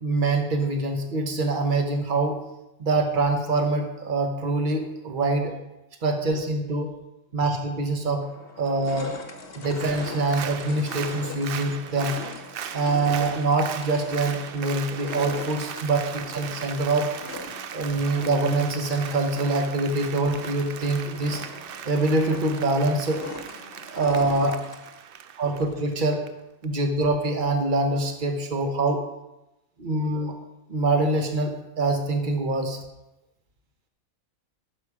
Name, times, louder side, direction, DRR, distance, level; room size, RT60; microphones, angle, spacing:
voice 1, 0.0-2.4 2.8-5.6 6.0-6.9 7.3-8.3 8.6-9.2 9.6-12.2 12.7-17.1 17.7-21.4 21.9-23.2 23.9-24.7 25.4-26.2 26.6-29.0 29.8-30.4 30.7-32.8, right 2 dB, 40° right, 5 dB, 1.1 m, -24 dB
sound 1, 7.6-7.7 8.2-25.0, left 3 dB, 45° left, 1.1 m, -41 dB
Applause, 9.7-26.3 26.6-26.7, right 9 dB, 75° right, 0.5 m, -38 dB
11.5 x 5.4 x 4.9 m, 0.95 s
omnidirectional pair, 1.5 m